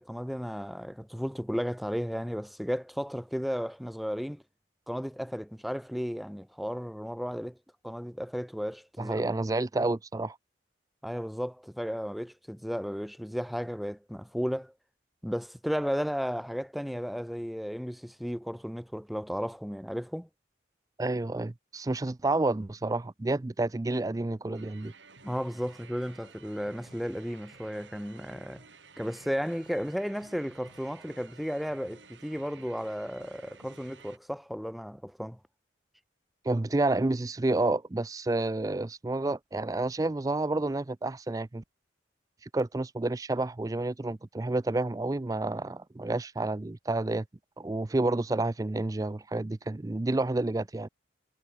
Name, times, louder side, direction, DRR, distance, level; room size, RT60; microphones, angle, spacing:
voice 1, 0.0-4.4 4.9-7.6 7.8-9.2 9.8-9.9 11.0-14.7 15.2-20.3 25.2-28.6 29.0-35.4, equal, ahead, 1.5 m, -34 dB
voice 2, 9.0-10.4 21.0-24.9 36.4-41.6 42.5-47.2 47.6-50.9, right 2 dB, 20° right, 0.4 m, -29 dB
sound 1, 24.5-34.2, right 5 dB, 85° right, 5.2 m, -54 dB
head